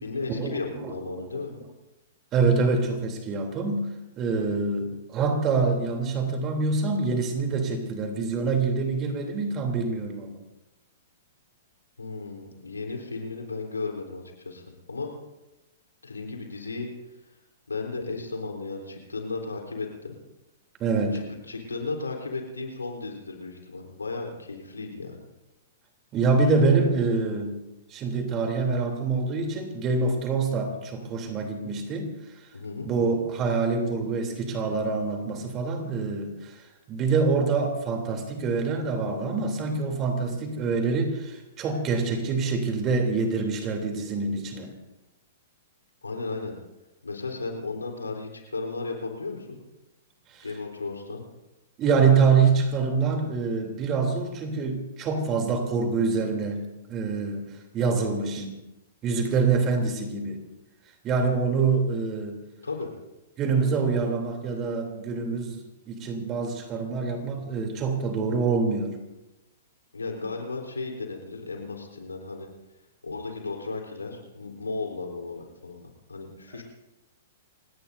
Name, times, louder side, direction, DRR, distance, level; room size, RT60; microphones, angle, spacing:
voice 1, 0.0-1.5 12.0-15.1 16.0-16.9 17.7-20.2 21.1-25.2 32.5-32.9 46.0-46.6 47.0-49.6 50.4-51.3 58.1-58.3 62.6-62.9 69.9-72.5 73.0-76.6, left 3 dB, 90° left, 2 dB, 3.9 m, -35 dB
voice 2, 0.8-1.3 2.3-3.9 4.2-10.4 20.8-21.2 26.1-27.6 27.9-32.1 32.8-36.6 36.9-44.7 50.3-50.4 51.8-56.6 56.9-57.4 57.7-58.5 59.0-60.4 61.0-62.4 63.4-69.0, right 4 dB, 30° right, 3 dB, 3.3 m, -25 dB
29.0 x 17.5 x 2.7 m, 0.99 s
hypercardioid pair, 115°, 0 cm